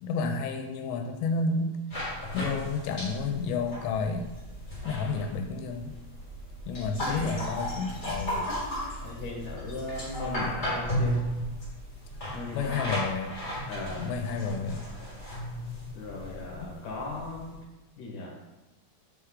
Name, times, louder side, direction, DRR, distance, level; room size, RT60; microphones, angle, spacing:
voice 1, 0.0-1.8 2.3-4.3 4.9-6.0 6.7-8.5 12.5-13.3 14.0-14.9 16.6-16.7, left 4 dB, 85° left, 5 dB, 2.8 m, -31 dB
sound 1, 1.9-17.6, equal, 30° left, 0.8 m, -35 dB
sound 2, 6.2-11.7, right 2 dB, 85° right, 2.6 m, -46 dB
voice 2, 6.7-7.9 9.0-11.1 12.3-12.9 13.7-14.1 15.9-17.6 18.0-18.3, left 3 dB, 65° left, -2 dB, 2.3 m, -38 dB
6.9 x 4.5 x 3.7 m, 1.0 s
omnidirectional pair, 5.0 m